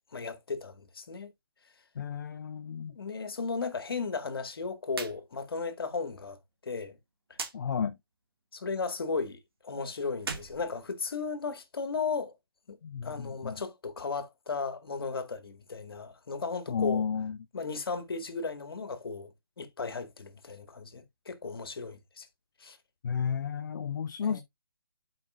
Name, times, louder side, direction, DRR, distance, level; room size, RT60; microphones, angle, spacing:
voice 1, 0.1-1.3 2.9-6.4 6.6-7.0 7.3-7.4 8.5-12.3 12.7-12.8 13.0-17.1 17.5-22.3 22.6-22.8 24.2-24.4, left 4 dB, 70° left, 1.9 m, -35 dB
voice 2, 2.0-2.9 7.5-8.0 12.8-13.6 16.7-17.4 23.0-24.4, left 7 dB, 50° left, 0.7 m, -32 dB
sound 1, 4.9-5.2 5.5-5.6 7.3-7.6 10.1-11.4, right 4 dB, 70° right, 2.2 m, -39 dB
11.5 x 5.2 x 2.6 m
figure-of-eight pair, 150°, 13 cm